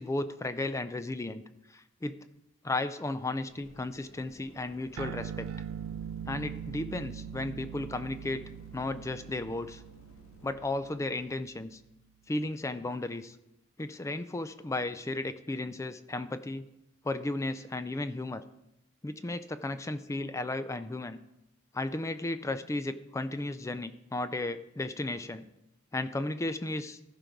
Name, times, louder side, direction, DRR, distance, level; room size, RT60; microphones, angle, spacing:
voice 1, 0.0-1.4 1.7-2.2 2.6-5.5 6.3-8.4 8.7-9.8 10.4-11.8 12.3-13.4 13.8-16.6 17.0-18.4 19.0-21.2 21.7-25.5 25.9-27.0, left 2 dB, 15° left, 12 dB, 0.3 m, -34 dB
sound 1, 3.5-10.5, left 1 dB, 75° left, 1.6 m, -57 dB
sound 2, 5.0-11.8, right 8 dB, 80° right, 0.4 m, -42 dB
14.0 x 5.2 x 4.6 m, 0.88 s
head